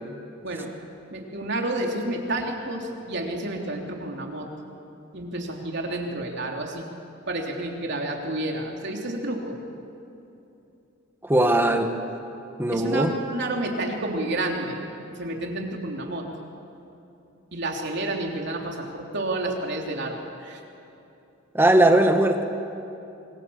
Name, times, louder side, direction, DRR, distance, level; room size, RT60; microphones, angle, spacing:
voice 1, 1.1-4.5 5.1-6.9 7.3-9.6 12.7-16.3 17.5-20.6, right 1 dB, 55° right, 1 dB, 3.6 m, -30 dB
voice 2, 11.2-11.9 12.6-13.1 21.5-22.4, right 1 dB, 10° right, 5 dB, 1.8 m, -19 dB
26.5 x 24.0 x 7.4 m, 2.9 s
head